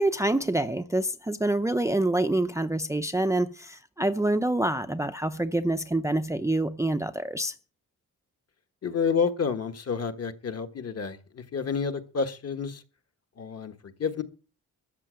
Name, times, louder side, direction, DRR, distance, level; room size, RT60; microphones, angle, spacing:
voice 1, 0.0-7.5, right 1 dB, 10° right, 0.6 m, -26 dB
voice 2, 8.8-12.8 13.4-14.2, left 5 dB, 45° left, 1.5 m, -29 dB
13.5 x 7.7 x 7.7 m
wide cardioid pair, 135°, 35 cm